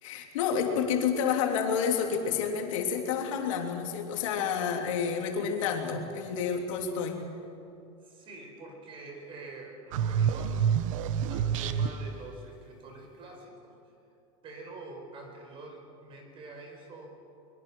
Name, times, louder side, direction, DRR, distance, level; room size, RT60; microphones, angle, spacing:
voice 1, 0.0-7.2, left 7 dB, 85° left, 3 dB, 3.2 m, -29 dB
voice 2, 8.0-10.7 11.3-13.9 14.4-17.1, right 2 dB, 30° right, 3 dB, 5.1 m, -46 dB
sound 1, 9.9-12.2, right 8 dB, 85° right, 1.0 m, -28 dB
23.5 x 22.5 x 6.3 m, 2.7 s
supercardioid pair, 155°, 16 cm